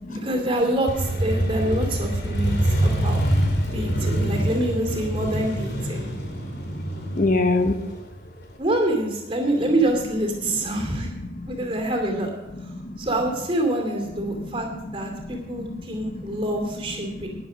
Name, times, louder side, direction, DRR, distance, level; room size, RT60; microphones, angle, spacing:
voice 1, 0.1-3.2 3.7-6.1 8.6-11.1 11.5-12.3 13.0-17.5, right 1 dB, 30° right, 2 dB, 2.6 m, -26 dB
Motorcycle, 0.9-8.5, right 1 dB, 60° left, 2.6 m, -25 dB
voice 2, 2.3-2.9 3.6-4.0 6.0-7.8 10.5-11.7 12.5-13.0 14.1-17.5, left 2 dB, 45° left, 7 dB, 0.8 m, -30 dB
11.5 x 10.5 x 5.2 m, 1.1 s
head